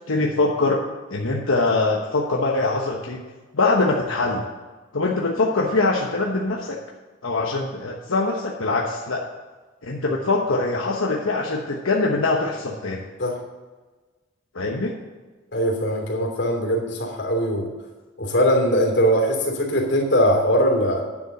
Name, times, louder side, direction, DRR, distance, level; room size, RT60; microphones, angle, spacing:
voice 1, 0.1-0.8 1.1-3.2 3.5-4.4 4.9-6.8 7.2-9.2 9.8-13.0 14.5-15.0, left 3 dB, 90° left, -1 dB, 1.1 m, -23 dB
voice 2, 15.5-17.7 18.2-21.0, equal, 60° left, 0 dB, 3.0 m, -21 dB
9.9 x 7.3 x 6.6 m, 1.3 s
head